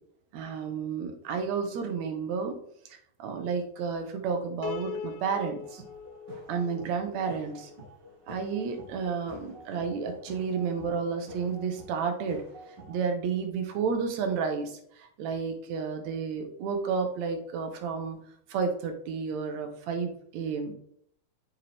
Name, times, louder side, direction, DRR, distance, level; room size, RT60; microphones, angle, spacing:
voice 1, 0.3-2.6 2.9-5.8 6.5-7.7 8.3-18.2 18.5-20.7, right 5 dB, 75° right, 5 dB, 2.1 m, -31 dB
Piano, 4.6-7.9, left 7 dB, 85° left, 2.0 m, -41 dB
sound 1, 5.6-13.0, equal, 50° right, 1.4 m, -48 dB
6.3 x 4.4 x 3.4 m, 0.66 s
omnidirectional pair, 3.3 m